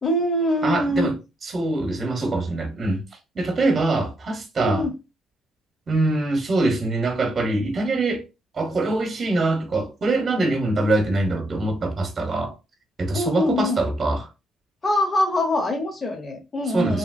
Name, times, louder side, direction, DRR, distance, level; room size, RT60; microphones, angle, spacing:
voice 1, 0.0-1.1 4.6-4.9 13.1-13.8 14.8-17.0, left 1 dB, 35° left, 0.8 m, -23 dB
voice 2, 0.6-1.1 1.4-3.0 3.3-4.9 5.9-8.2 8.5-12.5 13.0-14.3 16.7-17.0, right 2 dB, 40° right, 0.9 m, -23 dB
2.8 x 2.6 x 2.5 m
supercardioid pair, 75°, 0 cm